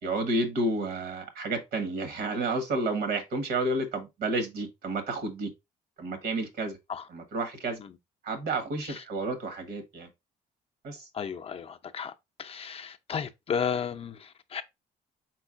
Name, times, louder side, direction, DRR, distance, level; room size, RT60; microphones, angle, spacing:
voice 1, 0.0-5.5 6.0-6.8 7.1-7.8 8.2-10.1 10.8-11.1, right 2 dB, 65° right, 1.3 m, -31 dB
voice 2, 11.1-12.1 12.4-14.6, left 7 dB, 35° left, 0.5 m, -33 dB
4.5 x 4.1 x 2.5 m
cardioid pair, 110°, 17 cm